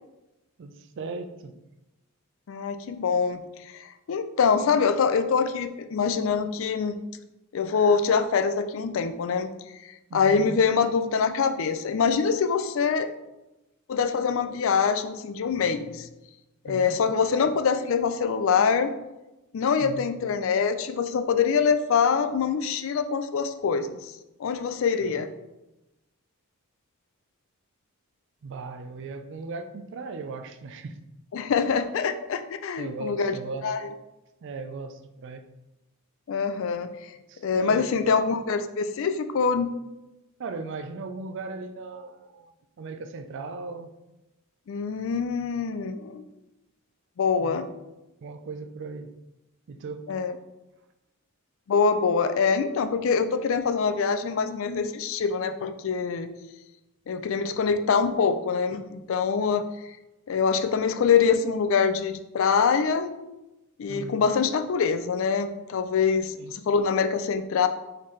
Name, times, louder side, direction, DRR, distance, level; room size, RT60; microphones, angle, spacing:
voice 1, 0.6-1.6 10.1-10.6 16.6-16.9 19.8-20.1 28.4-31.0 32.8-33.7 34.4-35.5 37.3-38.2 40.4-43.9 47.4-47.6 48.2-49.1 49.7-50.0 63.9-64.2 66.4-66.5, right 3 dB, 55° right, 8 dB, 0.4 m, -37 dB
voice 2, 2.5-3.4 3.7-3.8 4.1-7.0 7.5-9.5 10.1-13.1 13.9-16.1 16.6-18.9 19.5-24.1 24.4-25.3 31.3-33.3 33.6-33.8 36.3-36.9 37.4-39.7 44.7-46.2 47.2-47.7 50.1-50.4 51.7-56.3 57.1-59.6 60.3-63.1 63.8-67.7, left 6 dB, 60° left, 9 dB, 0.4 m, -24 dB
4.1 x 4.0 x 3.1 m, 0.98 s
head